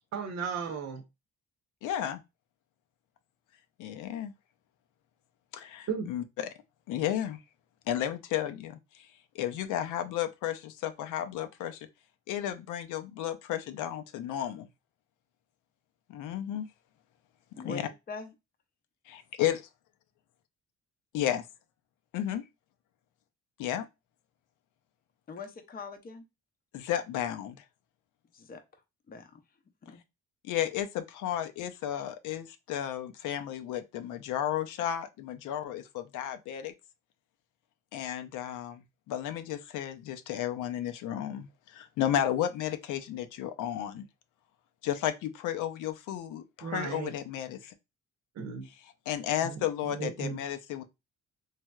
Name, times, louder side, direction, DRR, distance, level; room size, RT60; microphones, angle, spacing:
voice 1, 0.1-1.0 5.9-6.1 46.6-47.1 48.3-48.7 49.4-50.4, right 6 dB, 60° right, 0.8 m, -35 dB
voice 2, 1.8-2.2 3.8-4.3 5.5-6.5 6.9-7.4 7.9-9.1 9.3-11.9 12.3-14.7 16.1-16.7 17.6-17.9 19.4-19.6 21.1-21.5 22.1-22.4 23.6-23.9 26.7-27.6 30.4-36.7 37.9-44.1 44.8-47.7 49.1-50.9, left 11 dB, 85° left, 0.5 m, -33 dB
voice 3, 17.5-18.3 25.3-26.2 28.3-28.6 29.1-29.4 29.9-30.0, left 4 dB, 30° left, 0.5 m, -42 dB
3.2 x 2.7 x 2.2 m
cardioid pair, 90°, 30 cm